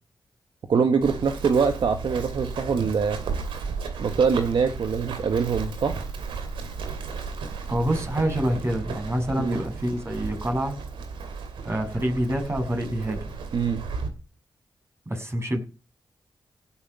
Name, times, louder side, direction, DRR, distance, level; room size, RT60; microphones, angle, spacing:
voice 1, 0.7-3.2 4.0-5.9 9.4-9.6 13.5-13.8, right 5 dB, 70° right, 7 dB, 1.4 m, -23 dB
Run, 1.0-14.1, right 5 dB, 85° right, 2.4 m, -34 dB
voice 2, 7.7-10.8 11.6-13.2 15.0-15.6, right 1 dB, 30° right, 4 dB, 6.8 m, -26 dB
16.5 x 7.9 x 6.9 m, 0.34 s
supercardioid pair, 40°, 8 cm